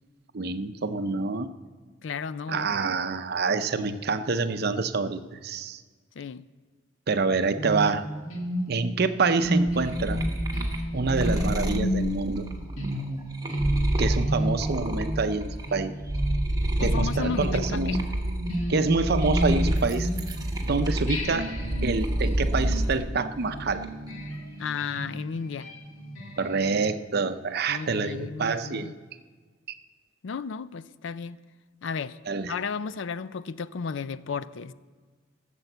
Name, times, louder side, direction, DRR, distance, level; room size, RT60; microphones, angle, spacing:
voice 1, 0.3-1.5 2.5-5.8 7.1-8.1 8.7-10.2 10.9-12.5 14.0-15.9 16.8-18.0 18.7-20.1 20.6-21.5 21.8-23.8 26.4-28.9 32.3-32.5, right 4 dB, 50° right, 0.6 m, -27 dB
voice 2, 2.0-2.7 6.2-6.5 16.8-18.0 24.6-25.7 27.7-28.9 30.2-31.4 31.8-32.2 32.5-34.7, left 5 dB, 65° left, 0.4 m, -33 dB
sound 1, 7.5-20.6 21.1-27.0, equal, 90° left, 2.1 m, -32 dB
sound 2, 9.4-15.7 16.0-23.0 23.4-24.1, right 1 dB, 20° right, 1.0 m, -29 dB
16.0 x 7.0 x 7.9 m
head